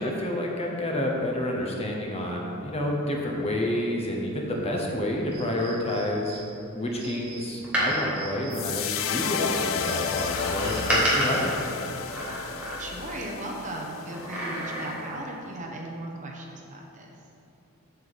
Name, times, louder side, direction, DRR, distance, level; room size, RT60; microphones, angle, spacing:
voice 1, 0.0-6.4 6.7-11.6, left 1 dB, 30° left, -1 dB, 0.8 m, -29 dB
sound 1, 3.3-11.4, right 5 dB, 75° right, 1.3 m, -47 dB
Door, 7.5-9.3 10.3-13.2 14.1-15.2 15.5-15.6, equal, 5° right, 1.6 m, -30 dB
Swoosh FX Medium, 8.5-14.8, left 6 dB, 60° left, 0.4 m, -31 dB
voice 2, 12.8-17.1, right 1 dB, 35° right, -1 dB, 1.0 m, -37 dB
7.7 x 7.2 x 4.1 m, 2.7 s
head